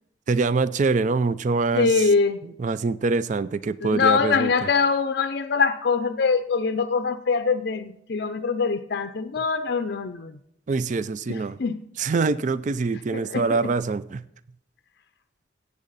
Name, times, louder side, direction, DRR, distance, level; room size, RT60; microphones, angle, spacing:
voice 1, 0.3-2.0 2.6-4.5 10.7-11.6 12.0-14.2, right 4 dB, 40° right, 0.4 m, -24 dB
voice 2, 1.7-2.4 3.8-10.4 11.3-11.8 13.1-13.6, left 5 dB, 55° left, 0.5 m, -23 dB
15.5 x 8.3 x 4.1 m
head